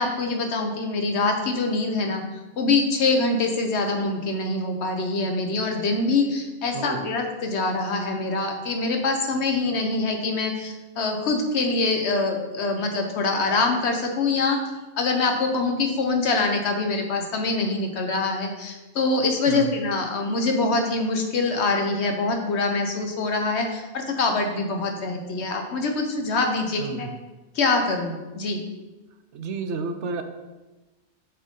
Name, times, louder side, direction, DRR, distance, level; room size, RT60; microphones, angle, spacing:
voice 1, 0.0-2.2 2.6-14.6 15.0-27.1 27.5-28.6, left 3 dB, 70° left, 4 dB, 1.2 m, -24 dB
voice 2, 26.8-27.1 29.3-30.2, right 4 dB, 85° right, 7 dB, 1.0 m, -31 dB
6.6 x 6.1 x 3.7 m, 1.1 s
omnidirectional pair, 1.2 m